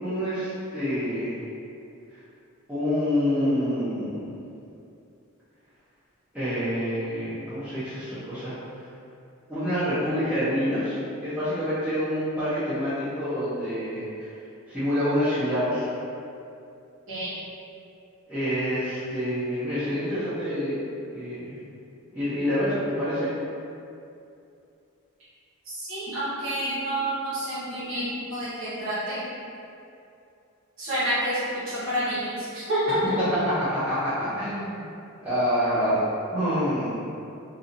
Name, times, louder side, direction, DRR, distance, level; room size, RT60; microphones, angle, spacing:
voice 1, 0.0-1.4 2.7-4.3 6.3-8.6 9.5-14.1 14.7-15.9 18.3-20.8 21.1-21.6 22.1-23.3 32.9-34.9 35.2-36.1 36.3-36.9, equal, 5° right, -15 dB, 0.6 m, -27 dB
voice 2, 25.7-29.2 30.8-33.0, right 1 dB, 60° right, -11 dB, 1.2 m, -29 dB
2.7 x 2.7 x 2.5 m, 2.6 s
head